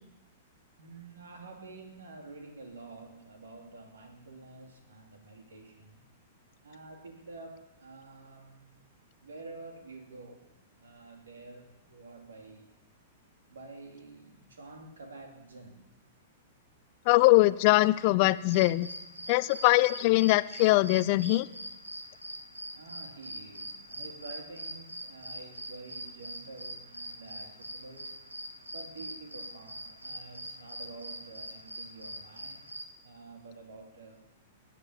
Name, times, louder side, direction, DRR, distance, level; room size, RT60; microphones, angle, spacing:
voice 1, 0.8-6.0 6.6-8.7 9.2-10.5 10.8-12.7 13.5-15.8 22.7-28.2 28.7-32.7 33.0-34.2, right 3 dB, 70° right, 3 dB, 2.8 m, -49 dB
voice 2, 17.1-18.9 19.3-21.5, left 19 dB, 45° left, 18 dB, 0.5 m, -22 dB
sound 1, 18.4-32.8, equal, 90° right, 1.3 m, -43 dB
18.0 x 9.3 x 7.2 m, 1.0 s
figure-of-eight pair, 105°, 0 cm